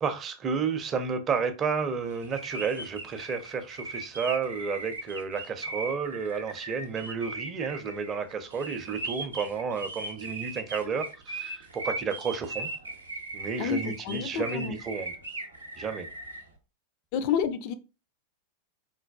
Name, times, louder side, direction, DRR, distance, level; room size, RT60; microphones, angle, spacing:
voice 1, 0.0-12.7 13.3-15.1 15.8-16.1, right 5 dB, 25° right, 0.5 m, -31 dB
sound 1, 2.2-16.4, right 2 dB, 75° right, 0.6 m, -38 dB
voice 2, 13.6-14.7 17.1-17.7, left 8 dB, 45° left, 0.4 m, -29 dB
3.8 x 2.2 x 2.2 m
figure-of-eight pair, 90°, 0 cm